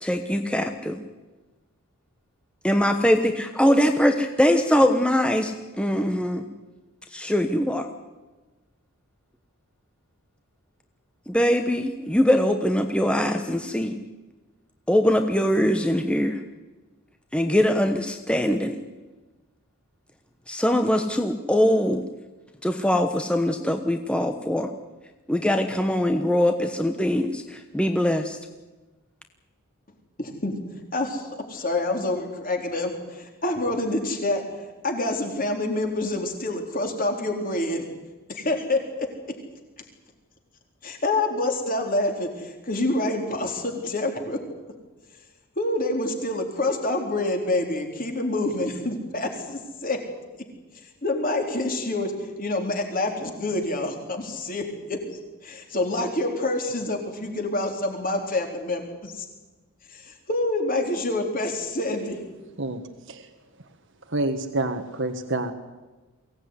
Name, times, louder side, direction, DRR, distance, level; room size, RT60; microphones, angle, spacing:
voice 1, 0.0-1.0 2.6-6.5 7.1-7.9 11.3-13.9 14.9-16.4 17.3-18.8 20.5-22.0 22.6-24.7 25.3-28.4, equal, 5° left, 6 dB, 1.1 m, -22 dB
voice 2, 30.2-37.8 38.3-39.1 40.8-44.4 45.6-50.0 50.7-55.0 55.4-59.2 59.9-62.2, left 2 dB, 40° left, 3 dB, 3.9 m, -27 dB
voice 3, 64.1-65.5, right 2 dB, 55° right, 6 dB, 1.6 m, -27 dB
23.0 x 17.5 x 9.7 m, 1.2 s
head